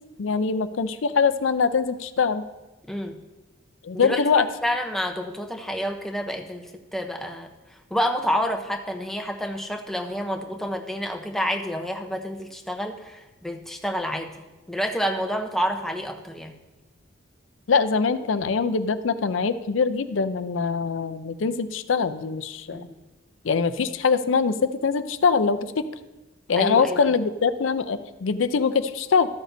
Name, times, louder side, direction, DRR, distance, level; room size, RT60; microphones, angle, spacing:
voice 1, 0.2-2.4 3.8-4.5 17.7-22.9 23.4-25.8 26.5-29.3, left 5 dB, 70° left, 12 dB, 0.5 m, -23 dB
voice 2, 2.9-3.2 3.9-4.2 4.6-7.5 7.9-16.6 22.7-23.0 26.6-27.1, equal, ahead, 3 dB, 0.7 m, -29 dB
13.5 x 9.2 x 2.7 m, 1.1 s
head